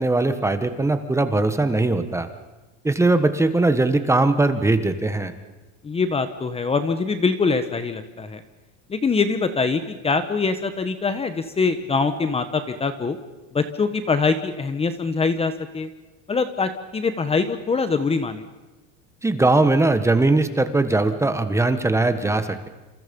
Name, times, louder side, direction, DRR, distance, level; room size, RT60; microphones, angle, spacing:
voice 1, 0.0-2.3 2.8-5.3 19.2-22.7, right 2 dB, 10° right, 9 dB, 1.5 m, -20 dB
voice 2, 5.8-8.4 8.9-13.2 13.5-15.9 16.3-18.4, left 4 dB, 15° left, 10 dB, 1.3 m, -23 dB
27.5 x 27.5 x 5.4 m, 1.1 s
cardioid pair, 145°, 34 cm